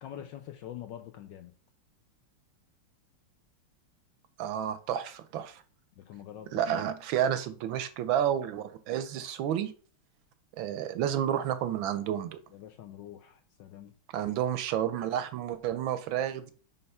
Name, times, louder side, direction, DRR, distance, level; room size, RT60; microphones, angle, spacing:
voice 1, 0.0-1.5 6.0-6.8 12.5-13.9, left 11 dB, 75° left, 7 dB, 1.1 m, -45 dB
voice 2, 4.4-5.6 6.5-9.7 10.6-12.4 14.1-16.5, right 10 dB, 75° right, 11 dB, 1.3 m, -30 dB
5.5 x 4.0 x 5.4 m, 0.40 s
omnidirectional pair, 2.4 m